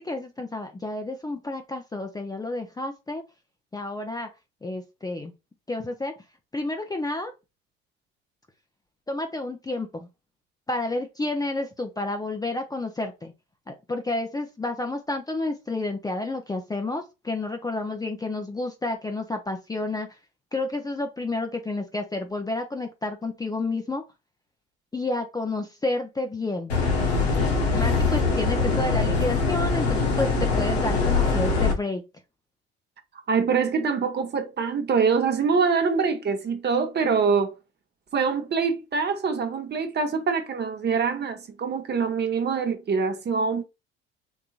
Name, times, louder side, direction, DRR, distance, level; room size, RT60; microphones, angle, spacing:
voice 1, 0.0-3.2 3.7-4.3 4.6-5.3 5.7-6.1 6.5-7.3 9.1-10.1 10.7-13.3 13.7-20.1 20.5-24.0 24.9-26.7 27.7-32.0, left 2 dB, 15° left, 0.6 m, -30 dB
sound 1, 26.7-31.7, left 4 dB, 85° left, 1.0 m, -23 dB
voice 2, 33.3-37.6 38.1-43.6, right 5 dB, 35° right, 0.9 m, -24 dB
3.8 x 2.8 x 2.4 m
hypercardioid pair, 60°, 30 cm